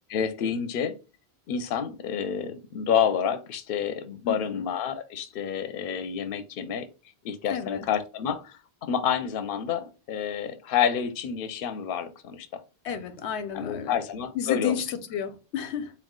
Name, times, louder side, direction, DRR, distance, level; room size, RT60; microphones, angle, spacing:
voice 1, 0.1-1.0 1.5-6.9 7.2-12.6 13.5-14.8, left 8 dB, 65° left, 0.7 m, -29 dB
voice 2, 4.2-4.6 7.5-7.9 12.8-14.0 14.3-15.9, left 8 dB, 90° left, 0.9 m, -31 dB
4.3 x 2.3 x 3.6 m
omnidirectional pair, 1.1 m